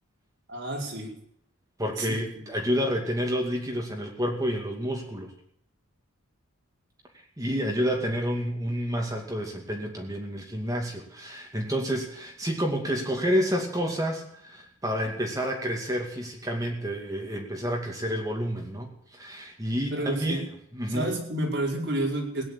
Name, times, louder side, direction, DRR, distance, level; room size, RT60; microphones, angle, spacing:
voice 1, 0.5-1.1 1.9-2.2 19.9-20.5 20.9-22.4, right 1 dB, 55° right, -1 dB, 5.1 m, -30 dB
voice 2, 1.8-5.3 7.4-20.4 20.7-21.1, equal, 15° right, 1 dB, 2.4 m, -29 dB
17.0 x 9.9 x 8.3 m, 0.68 s
head